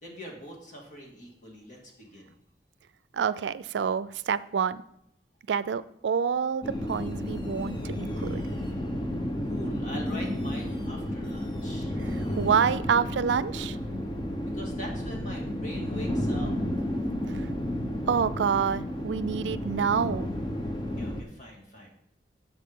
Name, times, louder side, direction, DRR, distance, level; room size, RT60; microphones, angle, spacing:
voice 1, 0.0-2.4 9.4-12.0 14.5-16.5 21.0-21.9, equal, 45° left, -1 dB, 2.2 m, -42 dB
voice 2, 3.1-4.8 5.5-8.5 12.0-12.1 12.4-13.8 17.3-17.5 18.1-20.3, right 7 dB, 90° right, 16 dB, 0.4 m, -27 dB
sound 1, 6.6-21.2, left 1 dB, 25° left, 0.8 m, -32 dB
10.5 x 7.1 x 3.7 m, 0.73 s
head